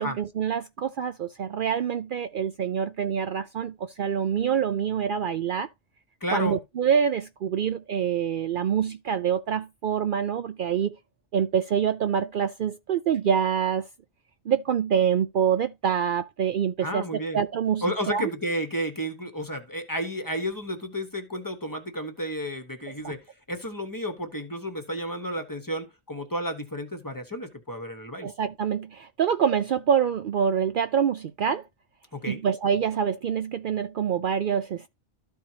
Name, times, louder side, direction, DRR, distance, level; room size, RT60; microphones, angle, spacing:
voice 1, 0.0-5.7 6.3-10.9 11.3-13.9 14.5-18.3 23.0-23.1 28.2-31.7 32.2-34.9, right 8 dB, 60° right, 0.6 m, -26 dB
voice 2, 6.2-6.6 16.8-17.4 17.8-28.3 32.1-32.4, equal, 20° left, 1.1 m, -32 dB
13.5 x 4.6 x 2.8 m
omnidirectional pair, 1.1 m